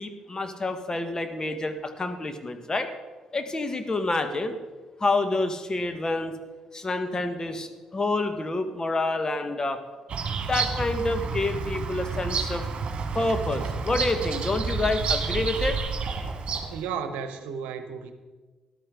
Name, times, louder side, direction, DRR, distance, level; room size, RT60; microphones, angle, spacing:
voice 1, 0.0-2.9 3.3-4.6 5.0-6.4 6.7-9.8 10.5-12.6 13.1-15.8, left 2 dB, 30° left, 7 dB, 1.5 m, -28 dB
Bird vocalization bird call bird song, 10.1-16.9, right 5 dB, 50° right, 1.9 m, -30 dB
voice 2, 16.7-18.1, right 7 dB, 75° right, 8 dB, 1.0 m, -33 dB
13.5 x 12.5 x 3.9 m, 1.3 s
hypercardioid pair, 45°, 2 cm